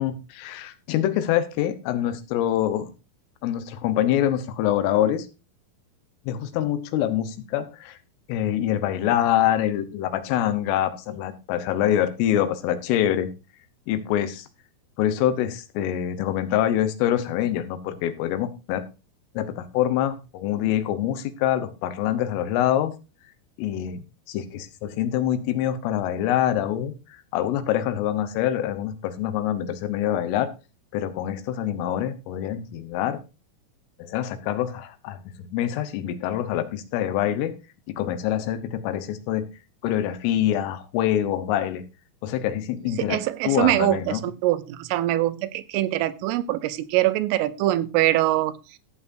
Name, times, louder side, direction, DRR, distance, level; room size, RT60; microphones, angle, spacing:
voice 1, 0.0-2.9 3.4-5.3 6.3-8.0 8.3-13.3 13.9-14.5 15.0-18.8 19.4-22.9 23.6-30.5 30.9-33.2 34.0-37.5 37.9-39.5 39.8-41.8 42.2-43.2 43.5-44.2, left 11 dB, 90° left, 11 dB, 3.7 m, -25 dB
voice 2, 43.0-48.6, right 15 dB, 90° right, 13 dB, 3.4 m, -23 dB
14.5 x 8.4 x 2.6 m, 0.30 s
omnidirectional pair, 5.6 m